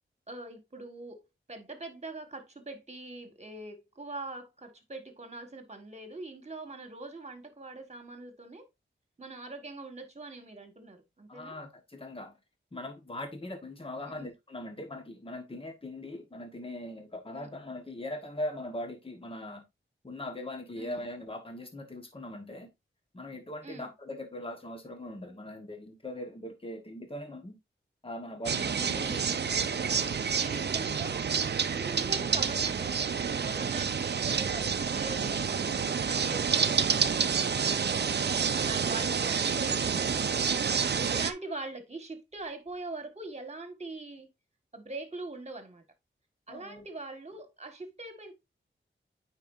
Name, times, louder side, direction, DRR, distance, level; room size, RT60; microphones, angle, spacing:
voice 1, 0.3-1.2 1.5-8.7 9.2-11.6 14.1-14.3 17.4-17.5 20.8-21.0 23.6-23.9 28.7-29.3 30.3-40.5 41.1-44.3 44.7-45.8 46.5-48.3, right 2 dB, 35° right, 1.7 m, -43 dB
voice 2, 11.3-12.4 12.7-19.6 20.0-22.7 23.1-27.6 28.0-29.2 29.5-30.0 46.5-46.9, left 1 dB, 25° left, 1.4 m, -40 dB
sound 1, 28.5-41.3, right 6 dB, 55° right, 0.5 m, -29 dB
9.1 x 4.6 x 2.6 m
wide cardioid pair, 80°, 21 cm